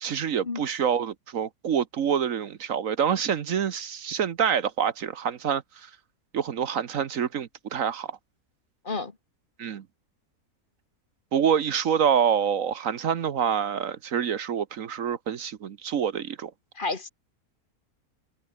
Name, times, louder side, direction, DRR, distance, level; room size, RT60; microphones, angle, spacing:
voice 1, 0.0-5.9 6.3-8.1 9.6-9.8 11.3-16.5, right 8 dB, 65° right, 1.3 m, -26 dB
voice 2, 16.7-17.1, left 3 dB, 35° left, 1.6 m, -30 dB
omnidirectional pair, 1.6 m